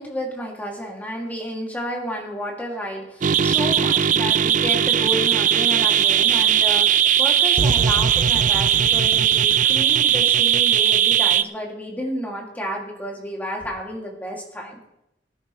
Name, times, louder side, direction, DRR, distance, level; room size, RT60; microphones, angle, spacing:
voice 1, 0.0-14.8, equal, 10° left, -1 dB, 2.5 m, -31 dB
sound 1, 3.2-11.4, right 9 dB, 45° right, 0.4 m, -18 dB
19.0 x 9.9 x 3.2 m, 0.84 s
head